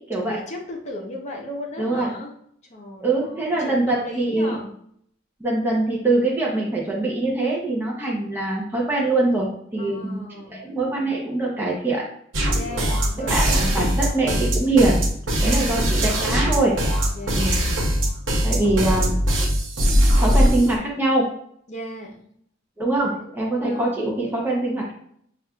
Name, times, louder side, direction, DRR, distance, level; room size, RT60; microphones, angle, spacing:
voice 1, 0.1-2.3 2.7-4.7 9.8-10.7 12.5-13.6 15.4-16.5 17.1-17.5 18.8-18.9 21.7-22.3 23.0-24.0, left 1 dB, 35° left, 0 dB, 0.8 m, -37 dB
voice 2, 1.8-2.1 3.0-4.6 5.4-12.0 13.3-15.0 15.4-16.8 17.3-17.6 18.4-19.1 20.2-21.3 22.8-24.9, right 2 dB, 10° right, -4 dB, 0.7 m, -23 dB
sound 1, 12.3-20.8, equal, 75° right, 0.8 m, -21 dB
6.0 x 2.4 x 2.3 m, 0.66 s
head